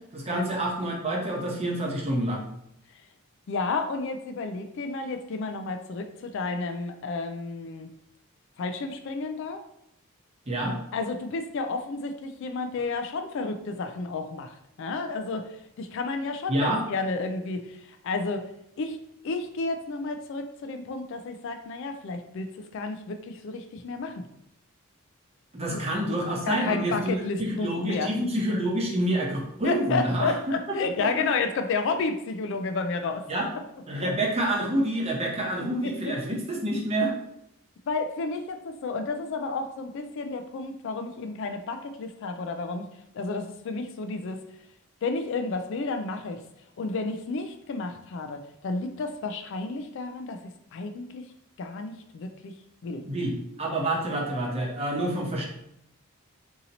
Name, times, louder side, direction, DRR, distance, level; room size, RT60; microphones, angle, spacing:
voice 1, 0.1-2.4 10.5-10.7 16.5-16.8 25.5-30.3 30.7-31.1 33.3-33.5 33.9-37.1 53.1-55.5, right 1 dB, 30° right, -2 dB, 0.8 m, -28 dB
voice 2, 3.5-7.9 8.6-9.6 10.9-14.5 14.8-18.5 18.8-19.0 19.2-24.2 25.7-25.8 26.4-28.1 29.6-33.2 35.8-36.1 37.9-42.9 43.1-44.4 45.0-46.4 46.8-50.4 50.7-51.2 51.6-52.5 52.8-53.0, left 3 dB, 60° left, 7 dB, 0.3 m, -31 dB
2.8 x 2.8 x 3.9 m, 0.77 s
head